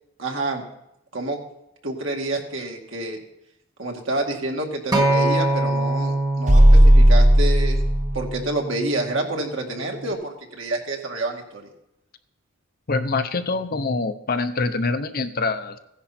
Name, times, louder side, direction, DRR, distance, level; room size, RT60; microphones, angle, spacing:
voice 1, 0.2-0.6 1.1-1.4 1.8-3.2 3.8-7.8 8.1-11.6, right 2 dB, 65° right, 1 dB, 2.3 m, -28 dB
Acoustic guitar, 4.9-9.2 10.0-10.1, right 2 dB, 20° right, 1.4 m, -25 dB
sound 1, 6.5-8.3, equal, 35° right, 1.1 m, -13 dB
voice 2, 12.9-15.8, left 3 dB, 45° left, 9 dB, 0.8 m, -25 dB
16.0 x 10.5 x 4.3 m, 0.83 s
head